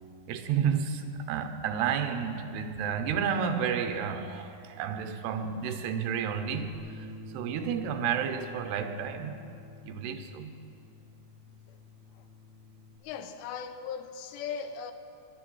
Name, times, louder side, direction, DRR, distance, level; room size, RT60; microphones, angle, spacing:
voice 1, 0.3-7.1 7.3-9.4 9.8-10.5, right 7 dB, 80° right, 3.0 m, -31 dB
Bass guitar, 6.7-13.0, left 2 dB, 45° right, 1.5 m, -48 dB
voice 2, 13.0-14.9, left 7 dB, 85° left, 3.0 m, -38 dB
19.5 x 11.5 x 6.3 m
omnidirectional pair, 4.8 m